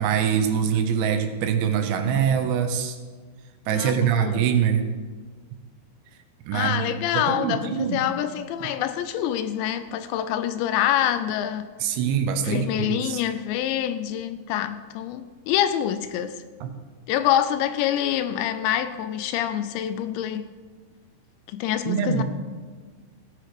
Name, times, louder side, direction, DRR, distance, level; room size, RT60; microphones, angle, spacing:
voice 1, 0.0-3.0 3.7-4.8 6.5-8.0 11.8-13.2 16.6-16.7 21.9-22.2, right 8 dB, 75° right, 3.0 m, -24 dB
voice 2, 3.7-4.4 6.5-11.7 12.4-16.4 17.1-20.5 21.5-22.2, left 11 dB, 80° left, 2.8 m, -26 dB
16.5 x 10.5 x 5.0 m
omnidirectional pair, 5.3 m